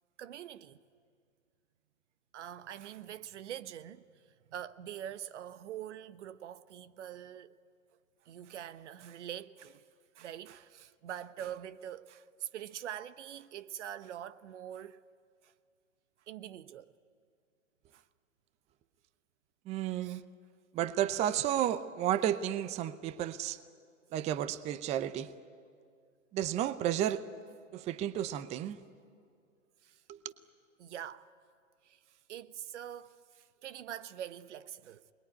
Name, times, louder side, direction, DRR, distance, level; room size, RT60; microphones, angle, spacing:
voice 1, 0.2-0.8 2.3-4.0 4.5-7.5 8.2-9.8 10.1-15.0 15.4-15.5 16.3-16.9 17.9-18.0 20.0-20.2 29.8-30.0 30.8-31.3 31.8-35.0, right 10 dB, 60° right, 1.1 m, -44 dB
voice 2, 19.7-20.2 20.7-23.6 24.1-25.3 26.3-27.2 27.7-28.8 30.1-30.2, right 11 dB, 15° right, 0.6 m, -32 dB
27.0 x 21.0 x 9.7 m
hypercardioid pair, 125°, 39 cm